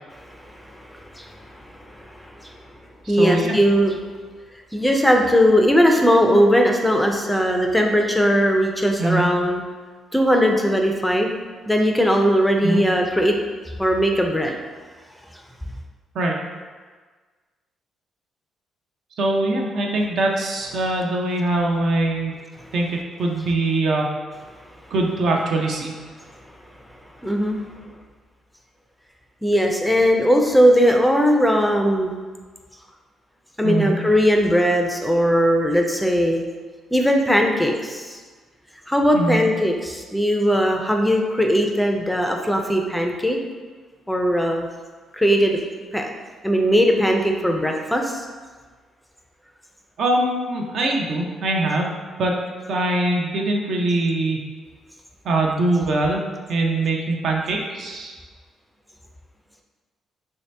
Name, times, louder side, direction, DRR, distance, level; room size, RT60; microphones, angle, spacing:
voice 1, 0.1-2.5 3.1-4.0 4.7-9.6 10.1-11.4 11.7-13.3 13.8-14.6 27.2-27.6 29.4-32.1 33.6-36.4 36.9-38.2 38.9-43.4 44.1-44.7 45.1-45.6 45.9-46.1 46.4-48.2, equal, 5° left, 2 dB, 0.4 m, -19 dB
voice 2, 3.0-3.6 9.0-9.3 12.6-12.8 16.1-16.4 19.2-22.3 22.7-24.1 24.9-25.9 33.6-34.0 39.1-39.4 50.0-51.9 52.2-52.3 52.7-54.4 55.2-56.2 56.5-58.1, right 2 dB, 65° right, 0 dB, 0.5 m, -22 dB
3.2 x 2.8 x 3.2 m, 1.4 s
cardioid pair, 90°, 0 cm